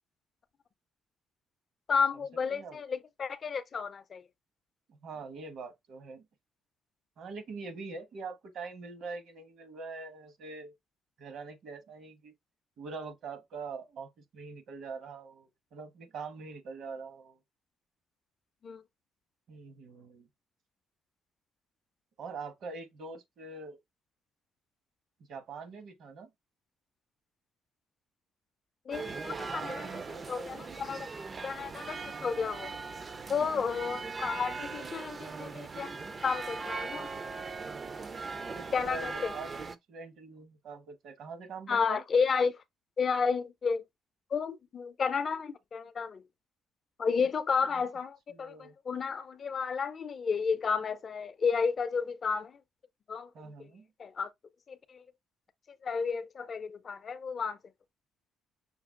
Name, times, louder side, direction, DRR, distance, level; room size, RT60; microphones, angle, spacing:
voice 1, 1.9-4.2 18.6-18.8 28.9-29.9 30.3-31.1 31.4-32.7 33.3-36.0 36.2-37.1 38.7-39.3 41.7-42.6 43.0-43.8 44.3-46.2 47.0-52.6 53.1-53.3 54.0-54.3 54.7-55.0 55.8-57.6, left 5 dB, 35° left, 0.4 m, -32 dB
voice 2, 2.5-2.8 4.9-6.2 7.2-10.7 11.2-12.3 12.8-17.4 19.5-20.3 22.2-23.8 25.3-26.3 29.3-29.4 29.7-30.6 38.5-42.0 47.6-47.8 48.3-48.8 53.3-53.9, right 4 dB, 60° right, 1.1 m, -44 dB
sound 1, 28.9-39.8, right 4 dB, 30° right, 0.4 m, -40 dB
5.8 x 2.3 x 3.6 m
cardioid pair, 135°, 0 cm